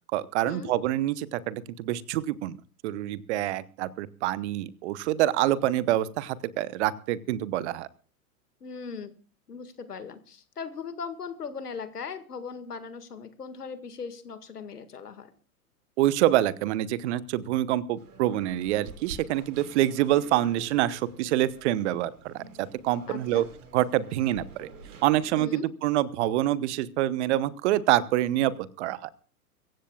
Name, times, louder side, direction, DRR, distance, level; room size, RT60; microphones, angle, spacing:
voice 1, 0.1-2.6 2.8-7.9 16.0-23.4 23.7-24.7 25.0-28.5 28.8-29.1, right 14 dB, 45° right, 17 dB, 1.0 m, -26 dB
voice 2, 8.6-9.1 9.5-15.3 23.1-23.5 25.3-25.6, left 5 dB, 80° left, 10 dB, 2.0 m, -39 dB
sound 1, 18.0-25.4, right 3 dB, 75° right, 4.4 m, -48 dB
23.5 x 15.5 x 2.4 m, 0.40 s
hypercardioid pair, 105°, 46 cm